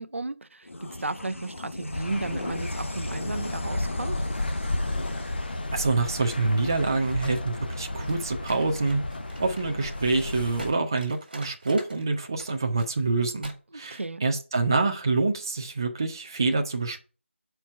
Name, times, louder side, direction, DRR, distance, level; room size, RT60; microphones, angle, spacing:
voice 1, 0.0-4.2 13.7-14.2, right 2 dB, 75° right, 0.7 m, -34 dB
sound 1, 0.6-7.4, left 1 dB, 80° left, 1.0 m, -38 dB
sound 2, 1.9-10.7, left 2 dB, 45° left, 0.8 m, -33 dB
voice 2, 5.7-9.0 9.4-17.0, right 3 dB, 20° right, 0.4 m, -26 dB
sound 3, 8.0-12.1 12.4-12.9 13.4-13.5 13.8-14.1, right 2 dB, 45° right, 1.8 m, -46 dB
5.4 x 4.5 x 5.7 m
figure-of-eight pair, 170°, 7 cm